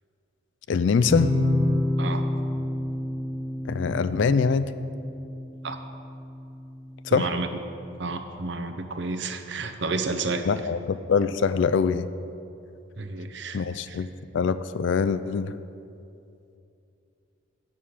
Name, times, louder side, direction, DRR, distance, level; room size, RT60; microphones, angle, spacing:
voice 1, 0.7-1.3 3.7-4.7 7.0-7.3 10.5-12.1 13.5-15.5, left 5 dB, 60° left, 13 dB, 0.3 m, -24 dB
sound 1, 1.1-6.7, left 1 dB, 20° left, 1.1 m, -28 dB
voice 2, 7.1-7.5 8.0-10.4 13.0-13.6 13.9-14.0, right 3 dB, 55° right, 7 dB, 0.7 m, -30 dB
8.6 x 7.5 x 6.3 m, 2.6 s
head